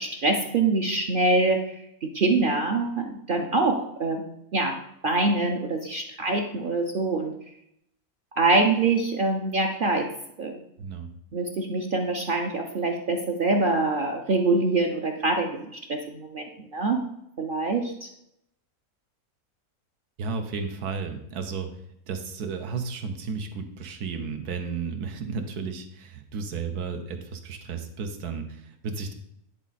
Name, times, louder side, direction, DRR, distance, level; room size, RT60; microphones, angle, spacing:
voice 1, 0.0-4.8 5.0-7.3 8.3-10.1 10.4-10.6 11.3-17.0 17.4-18.1, right 3 dB, 55° right, 3 dB, 0.6 m, -25 dB
voice 2, 10.8-11.1 20.2-21.7 22.1-29.1, right 5 dB, 85° right, 6 dB, 1.4 m, -33 dB
10.0 x 4.1 x 4.1 m, 0.78 s
omnidirectional pair, 1.6 m